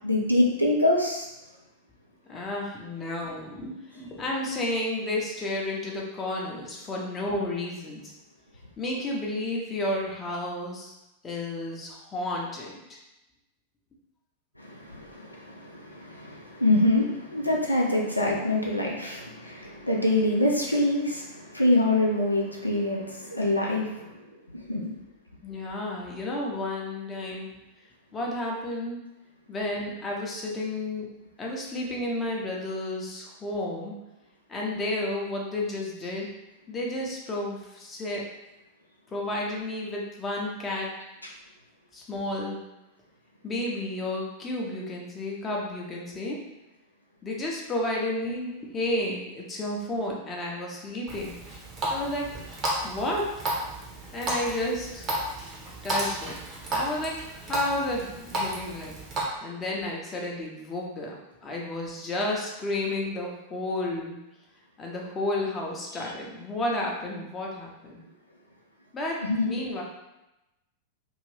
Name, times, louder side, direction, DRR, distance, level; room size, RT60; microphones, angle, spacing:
voice 1, 0.0-1.2 14.6-24.1 24.5-24.9 69.2-69.5, left 1 dB, 85° left, -2 dB, 0.4 m, -25 dB
voice 2, 2.3-8.1 8.8-10.9 11.2-13.0 25.4-27.5 28.1-29.0 29.5-31.1 31.4-33.9 34.5-36.3 36.7-38.2 39.1-40.9 41.9-42.6 43.4-46.4 47.2-51.3 51.9-52.3 52.8-53.3 54.1-55.1 55.8-56.4 56.7-58.9 59.4-61.1 61.4-64.2 64.8-68.0 68.9-69.2 69.4-69.8, left 1 dB, 20° left, -2 dB, 0.7 m, -31 dB
Water tap faucet, 51.1-59.2, right 1 dB, 30° right, 0.8 m, -33 dB
2.7 x 2.5 x 3.2 m, 0.95 s
figure-of-eight pair, 90°, 0 cm